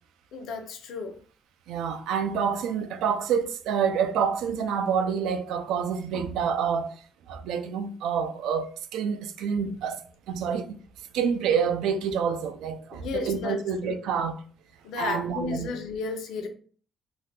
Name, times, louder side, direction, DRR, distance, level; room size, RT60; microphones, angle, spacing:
voice 1, 0.3-1.1 12.9-14.0 14.8-16.5, left 4 dB, 75° left, 0.6 m, -33 dB
voice 2, 1.7-6.9 7.3-10.8 11.1-14.4 15.0-15.7, right 7 dB, 85° right, 0.4 m, -28 dB
2.6 x 2.3 x 3.5 m
cardioid pair, 160°, 0 cm